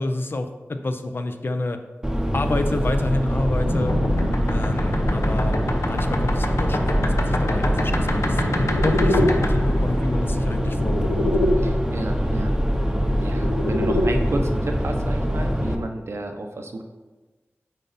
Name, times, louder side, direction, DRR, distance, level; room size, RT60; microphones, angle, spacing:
voice 1, 0.0-1.8 2.3-3.9 4.5-5.6 5.8-11.3, left 2 dB, 50° left, 7 dB, 0.6 m, -28 dB
sound 1, 2.0-15.8, equal, 10° right, 0.8 m, -23 dB
sound 2, 3.6-11.5 12.8-14.1, left 1 dB, 90° left, 0.8 m, -26 dB
voice 2, 11.6-12.5 13.2-16.9, right 2 dB, 65° right, 4 dB, 0.8 m, -31 dB
8.8 x 4.0 x 4.2 m, 1.2 s
wide cardioid pair, 85°, 5 cm